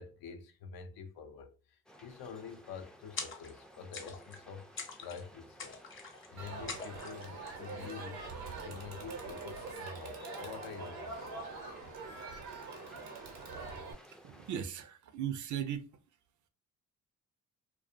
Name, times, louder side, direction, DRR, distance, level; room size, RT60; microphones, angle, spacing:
voice 1, 0.0-4.7 5.0-8.2 8.6-11.5, left 6 dB, 75° left, 0.6 m, -47 dB
sound 1, 1.9-14.6, equal, ahead, 0.3 m, -57 dB
sound 2, 3.2-3.6 3.9-4.4 4.8-5.2 5.6-6.3 6.7-7.3, left 4 dB, 35° left, 0.7 m, -43 dB
Crowd, 6.4-13.9, right 3 dB, 90° right, 0.8 m, -44 dB
voice 2, 14.1-15.9, right 9 dB, 55° right, 0.5 m, -38 dB
2.4 x 2.2 x 2.5 m
cardioid pair, 75°, 36 cm